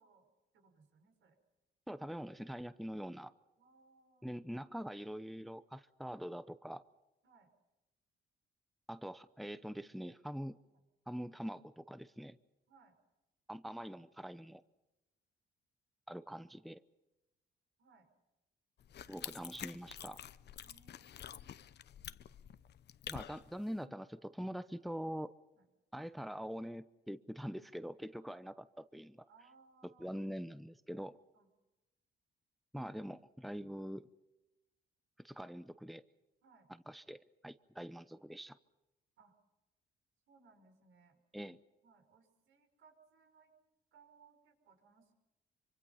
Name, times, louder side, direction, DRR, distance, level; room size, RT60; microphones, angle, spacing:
voice 1, 0.0-1.4 3.6-4.3 7.2-7.5 12.7-13.0 17.8-18.1 20.6-21.5 25.5-25.6 29.3-30.3 31.3-31.5 36.4-36.7 39.2-39.4 40.3-41.2 41.8-43.5 43.9-45.1, right 4 dB, 80° right, 5 dB, 5.8 m, -66 dB
voice 2, 1.9-3.3 4.2-6.8 8.9-10.6 11.1-12.4 13.5-14.6 16.1-16.8 19.1-20.2 23.1-25.3 25.9-29.3 30.0-31.2 32.7-34.1 35.2-36.0 36.9-38.6 41.3-41.6, equal, ahead, 13 dB, 0.7 m, -44 dB
sound 1, 18.8-23.8, left 10 dB, 60° left, 0.9 m, -49 dB
25.5 x 25.0 x 5.7 m, 1.0 s
cardioid pair, 90°, 20 cm